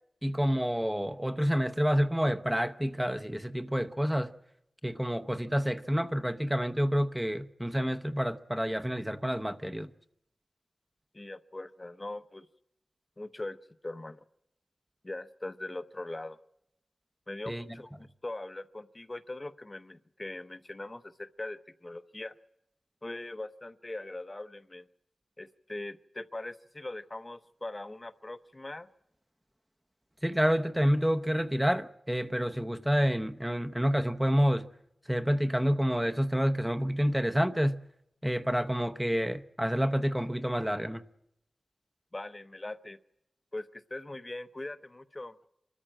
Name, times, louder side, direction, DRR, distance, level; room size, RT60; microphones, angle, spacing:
voice 1, 0.2-4.3 4.8-9.9 17.5-17.6 30.2-34.7 35.1-37.8 38.2-41.0, equal, 5° right, 0.7 m, -28 dB
voice 2, 11.1-12.5 13.2-13.6 13.8-14.2 15.0-16.4 17.3-17.9 18.2-22.3 23.0-24.8 25.4-28.9 42.1-43.0 43.5-45.3, left 2 dB, 25° left, 0.8 m, -41 dB
25.5 x 13.5 x 8.8 m
wide cardioid pair, 100°, 0 cm